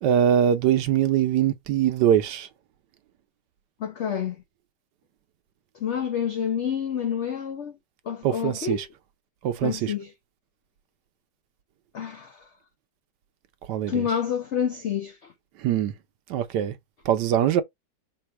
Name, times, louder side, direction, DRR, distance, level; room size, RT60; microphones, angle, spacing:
voice 1, 0.0-2.5 8.2-8.9 9.4-9.9 13.7-14.1 15.6-15.9 16.3-16.8 17.0-17.6, right 9 dB, 75° right, 1.3 m, -22 dB
voice 2, 3.8-4.4 5.8-7.7 8.1-8.8 9.6-10.1 11.9-12.4 13.9-15.3, left 8 dB, 70° left, 0.6 m, -28 dB
4.2 x 2.5 x 4.6 m
omnidirectional pair, 1.9 m